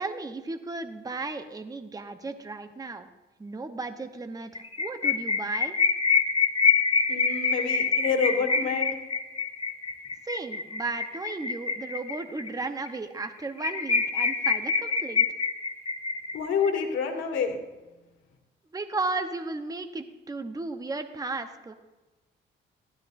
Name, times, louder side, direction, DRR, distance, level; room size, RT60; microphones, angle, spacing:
voice 1, 0.0-3.1 3.4-5.8 10.2-15.2 18.7-21.7, right 3 dB, 20° right, 7 dB, 0.9 m, -35 dB
sound 1, 4.6-12.5 12.9-13.0 13.2-13.3 13.6-16.7, left 5 dB, 30° left, 1.2 m, -26 dB
voice 2, 7.1-8.9 16.3-17.6, left 6 dB, 75° left, 2 dB, 2.2 m, -28 dB
15.5 x 12.0 x 2.6 m, 1.1 s
cardioid pair, 90°, 20 cm